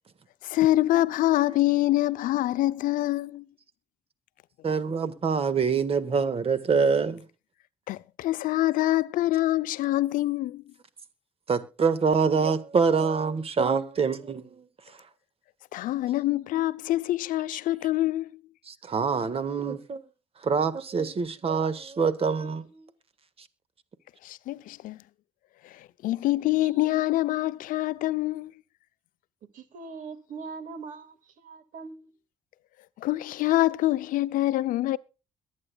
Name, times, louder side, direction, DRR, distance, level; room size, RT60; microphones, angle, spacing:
voice 1, 0.4-3.5 7.9-10.6 15.7-18.3 24.2-25.0 25.6-28.5 33.0-35.0, left 16 dB, 75° left, 0.6 m, -25 dB
voice 2, 4.6-7.2 11.5-15.0 18.7-20.0 20.4-22.8 23.4-23.5, right 5 dB, 45° right, 1.6 m, -25 dB
voice 3, 29.5-32.1, right 4 dB, 70° right, 2.1 m, -41 dB
22.5 x 8.9 x 2.3 m
supercardioid pair, 70°, 14 cm